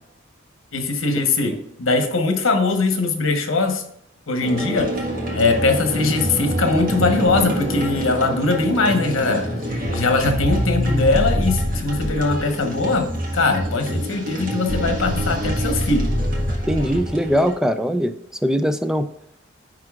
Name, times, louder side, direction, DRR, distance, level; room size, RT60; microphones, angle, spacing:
voice 1, 0.7-3.8 4.3-5.1 5.3-13.1 13.3-16.1, left 3 dB, 80° left, 5 dB, 1.2 m, -21 dB
sound 1, 4.4-17.5, equal, 45° right, 1.6 m, -25 dB
voice 2, 16.7-18.1 18.4-19.1, equal, 5° right, 8 dB, 0.3 m, -21 dB
10.0 x 3.8 x 2.4 m, 0.74 s
head